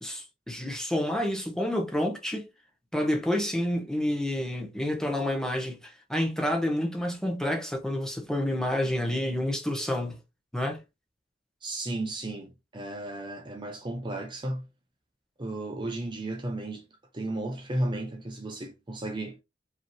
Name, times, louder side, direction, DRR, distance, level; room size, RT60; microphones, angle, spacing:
voice 1, 0.0-2.5 2.9-10.2 10.5-10.8, left 1 dB, 5° left, 1.0 m, -29 dB
voice 2, 11.6-14.6 15.4-16.8 17.1-19.4, right 1 dB, 25° right, 0.6 m, -34 dB
5.0 x 2.9 x 3.0 m
head